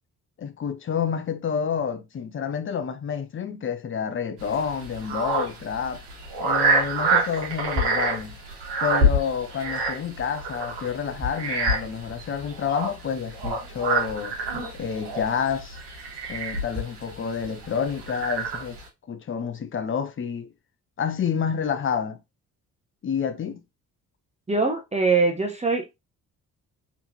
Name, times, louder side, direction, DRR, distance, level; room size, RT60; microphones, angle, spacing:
voice 1, 0.4-6.0 6.4-8.4 8.8-14.4 14.7-15.8 16.3-18.8 19.1-20.5 21.0-22.2 23.0-23.6, left 7 dB, 25° left, 0.7 m, -29 dB
sound 1, 4.4-18.9, right 2 dB, 65° right, 1.7 m, -27 dB
voice 2, 24.5-26.0, right 4 dB, 15° right, 1.0 m, -23 dB
3.9 x 3.5 x 2.8 m
figure-of-eight pair, 40°, 45 cm